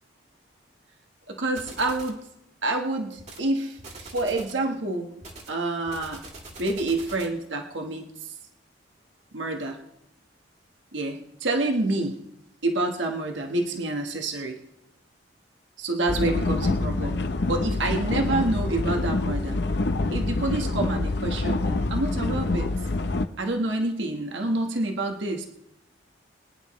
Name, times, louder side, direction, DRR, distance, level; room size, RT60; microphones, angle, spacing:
voice 1, 1.3-2.2 2.6-5.1 5.5-6.2 6.6-8.3 9.3-9.8 10.9-12.2 12.6-14.6 15.8-17.2 17.5-19.6 20.1-22.7 23.4-25.5, right 2 dB, 75° right, 3 dB, 1.3 m, -28 dB
sound 1, 1.6-2.2 3.2-3.5 3.8-4.6 5.2-7.4, right 2 dB, 35° right, 2.0 m, -44 dB
sound 2, 16.1-23.3, left 2 dB, 60° left, 0.7 m, -26 dB
22.5 x 10.5 x 3.1 m, 0.86 s
head